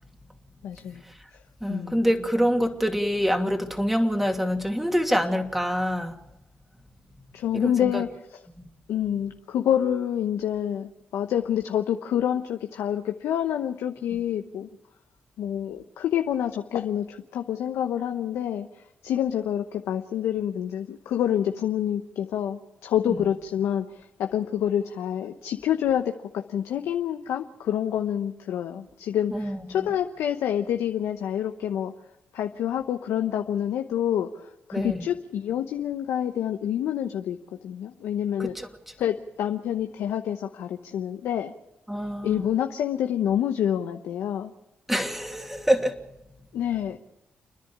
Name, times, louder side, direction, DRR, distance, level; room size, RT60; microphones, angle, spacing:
voice 1, 0.6-1.0 1.7-2.1 7.3-8.4 8.9-14.7 15.4-31.9 32.3-38.6 39.0-41.5 42.2-44.5 46.5-47.0, left 10 dB, 85° left, 6 dB, 0.9 m, -27 dB
voice 2, 1.6-6.1 7.5-8.0 23.1-23.2 29.3-29.6 34.7-35.0 38.4-38.7 41.9-42.4 44.9-46.0, equal, 5° right, 4 dB, 2.7 m, -25 dB
30.0 x 10.5 x 8.7 m, 0.90 s
supercardioid pair, 60°, 4 cm